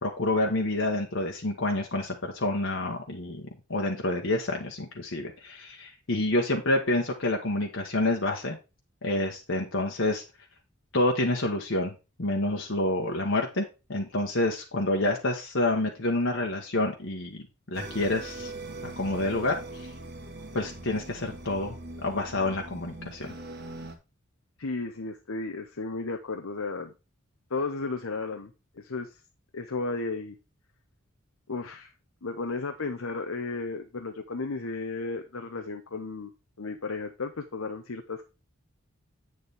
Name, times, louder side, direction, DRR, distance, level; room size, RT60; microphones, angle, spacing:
voice 1, 0.0-8.6 9.0-10.2 10.9-11.9 12.2-18.5 18.8-19.6 20.5-23.3, left 2 dB, 60° left, 1 dB, 1.3 m, -28 dB
sound 1, 17.7-23.9, right 2 dB, 50° right, 1.5 m, -41 dB
voice 2, 24.6-26.9 27.5-28.5 28.8-29.2 29.5-30.4 31.5-31.9 32.2-36.3 36.6-38.2, left 3 dB, 80° left, 5 dB, 0.9 m, -34 dB
8.6 x 6.7 x 3.5 m, 0.28 s
head